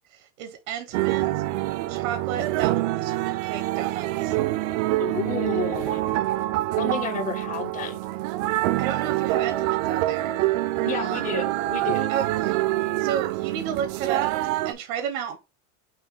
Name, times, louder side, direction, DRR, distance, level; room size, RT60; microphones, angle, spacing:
voice 1, 0.1-1.4 1.9-4.4 8.8-10.4 10.8-11.3 12.1-12.7 13.0-15.4, right 9 dB, 90° right, 1.0 m, -33 dB
sound 1, 0.9-14.7, right 17 dB, 70° right, 0.5 m, -26 dB
voice 2, 5.0-6.0 6.8-8.0 10.8-12.1, left 7 dB, 20° left, 0.4 m, -31 dB
4.3 x 2.7 x 3.4 m
supercardioid pair, 145°, 40 cm